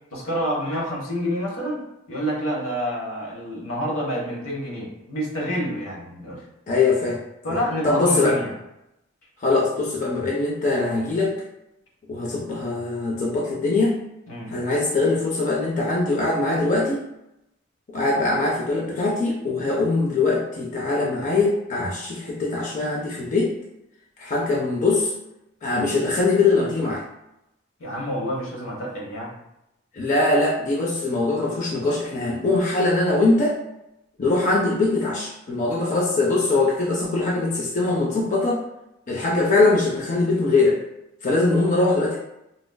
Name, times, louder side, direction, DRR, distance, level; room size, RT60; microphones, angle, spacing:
voice 1, 0.1-6.4 7.4-8.5 14.3-14.5 27.8-29.3, equal, 80° left, -3 dB, 1.0 m, -28 dB
voice 2, 6.7-7.2 7.5-8.4 9.4-11.4 12.1-14.0 14.5-17.0 17.9-23.5 24.2-25.1 25.6-27.0 29.9-33.6 34.2-38.7 39.1-40.8 41.2-42.2, left 3 dB, 40° left, -3 dB, 0.5 m, -22 dB
3.8 x 2.4 x 2.2 m, 0.87 s
head